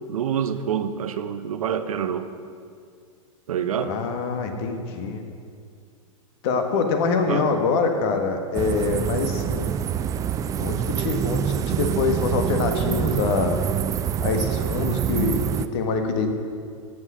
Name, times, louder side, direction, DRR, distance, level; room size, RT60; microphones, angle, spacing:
voice 1, 0.1-2.3 3.5-3.9 7.3-7.5, right 8 dB, 80° right, 10 dB, 0.8 m, -26 dB
voice 2, 3.8-5.2 6.4-9.7 10.6-13.6 14.2-16.3, left 4 dB, 55° left, 5 dB, 1.6 m, -25 dB
sound 1, 8.5-15.7, right 9 dB, 20° right, 0.3 m, -26 dB
17.0 x 6.3 x 6.3 m, 2.2 s
hypercardioid pair, 115°, 18 cm